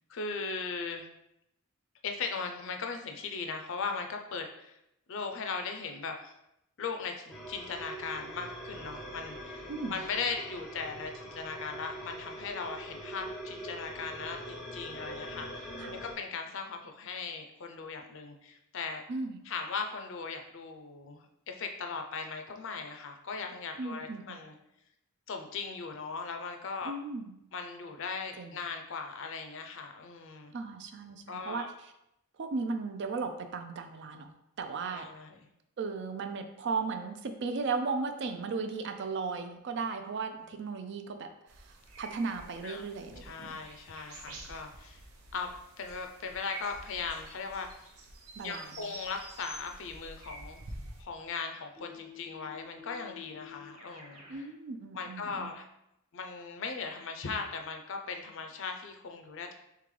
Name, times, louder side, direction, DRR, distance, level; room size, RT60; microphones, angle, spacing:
voice 1, 0.1-1.0 2.0-4.8 5.1-6.3 6.8-15.7 16.0-19.0 19.5-24.5 25.3-26.9 27.5-30.5 31.3-31.7 34.8-35.4 40.4-40.5 42.6-42.8 43.2-45.0 45.3-45.5 45.8-47.9 48.4-50.7 51.0-54.4 54.9-55.7 56.1-59.5, left 5 dB, 60° left, 4 dB, 0.5 m, -38 dB
sound 1, 7.3-16.1, equal, ahead, 0.6 m, -43 dB
voice 2, 9.7-10.0 15.8-16.0 19.1-19.5 23.8-24.4 26.8-27.4 28.4-28.7 30.5-31.9 32.4-34.3 34.6-35.1 35.8-41.3 41.6-43.6 44.2-44.4 48.4-48.9 54.3-55.6, right 4 dB, 50° right, 7 dB, 0.4 m, -36 dB
sound 2, 41.5-51.0, right 2 dB, 80° right, 0.7 m, -48 dB
Keyboard (musical), 51.8-54.5, left 8 dB, 30° right, 1.1 m, -50 dB
3.7 x 3.4 x 3.2 m, 0.83 s
head